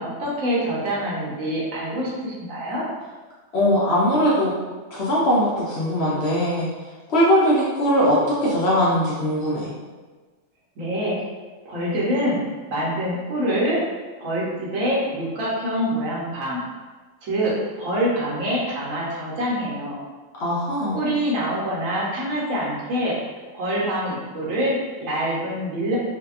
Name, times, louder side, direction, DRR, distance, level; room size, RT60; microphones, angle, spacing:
voice 1, 0.0-2.8 10.8-11.2 11.6-12.4 12.7-13.8 14.2-16.6 17.2-19.9 20.9-23.1 23.5-26.0, equal, 70° right, -6 dB, 1.1 m, -25 dB
voice 2, 3.5-4.6 4.9-6.7 7.1-9.7 20.4-21.0, equal, 65° left, -7 dB, 0.7 m, -20 dB
2.7 x 2.1 x 2.3 m, 1.3 s
omnidirectional pair, 1.4 m